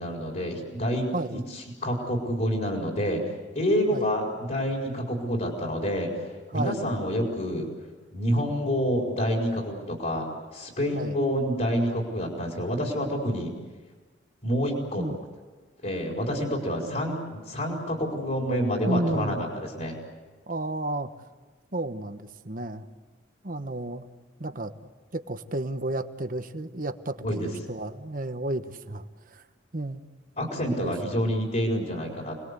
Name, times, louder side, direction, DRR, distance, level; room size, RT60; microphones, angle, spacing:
voice 1, 0.0-7.7 8.1-13.5 14.4-15.1 15.8-20.0 27.2-27.5 30.4-32.4, equal, 45° left, 0 dB, 4.3 m, -28 dB
voice 2, 1.1-1.4 3.9-4.1 6.5-6.9 10.9-11.1 15.0-15.2 18.8-19.4 20.5-21.1 21.7-22.8 23.4-24.1 24.4-24.7 25.1-29.4 29.7-30.0 30.7-30.9, right 1 dB, 45° right, 9 dB, 1.2 m, -32 dB
29.5 x 20.5 x 8.2 m, 1.3 s
head